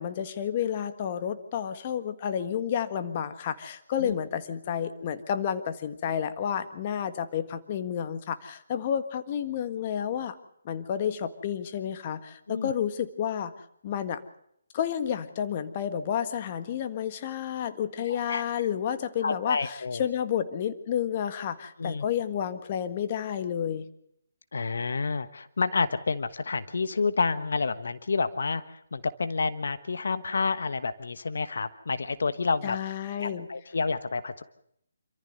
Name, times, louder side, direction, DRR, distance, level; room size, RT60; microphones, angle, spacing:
voice 1, 0.0-10.4 10.6-13.5 13.8-14.2 14.7-23.8 32.6-33.5, left 9 dB, 35° left, 10 dB, 1.7 m, -30 dB
voice 2, 18.1-18.4 19.2-20.0 21.8-22.0 24.5-32.8 33.2-34.4, left 4 dB, 70° left, 12 dB, 1.3 m, -29 dB
27.0 x 14.5 x 6.6 m, 0.72 s
hypercardioid pair, 155°, 0 cm